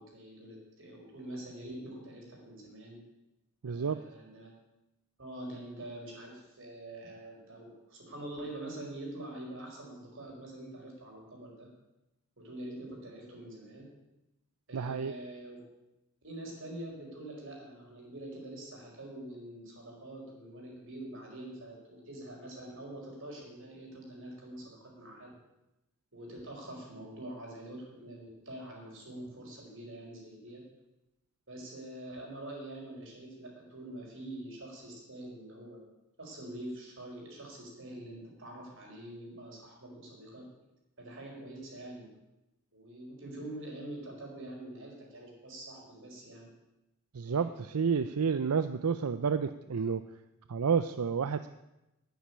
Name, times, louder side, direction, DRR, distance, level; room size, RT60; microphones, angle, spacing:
voice 1, 0.0-3.0 3.6-4.5 5.2-11.7 12.4-13.9 14.7-15.6 16.2-25.3 26.1-30.6 31.5-35.8 36.2-40.5 41.0-42.1 42.7-46.5 47.2-47.4, right 1 dB, 60° right, -1 dB, 4.9 m, -45 dB
voice 2, 3.6-4.0 14.7-15.1 47.1-50.1 50.5-51.5, right 6 dB, 85° right, 11 dB, 0.5 m, -30 dB
9.7 x 9.4 x 9.9 m, 0.94 s
head